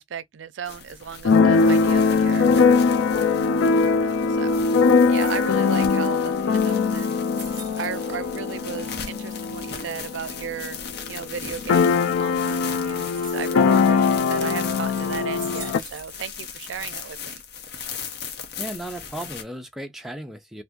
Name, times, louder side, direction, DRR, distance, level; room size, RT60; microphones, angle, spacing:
voice 1, 0.0-2.9 3.8-4.6 5.1-7.2 7.8-10.8 11.1-17.4, right 7 dB, 80° right, 0.4 m, -35 dB
sound 1, 0.6-19.4, left 6 dB, 55° left, 0.7 m, -38 dB
Keyboard (musical), 1.2-10.8 11.1-11.2 11.4-15.8, left 4 dB, 90° left, 0.3 m, -21 dB
sound 2, 5.0-5.7 6.3-6.4 6.7-8.4 8.7-9.3 10.0-10.5 13.0-13.7 14.2-14.3 14.7-16.5 16.7-17.3 18.1-18.6, right 3 dB, 25° right, 1.3 m, -45 dB
voice 2, 18.6-20.6, right 1 dB, ahead, 0.4 m, -35 dB
2.6 x 2.4 x 3.5 m
head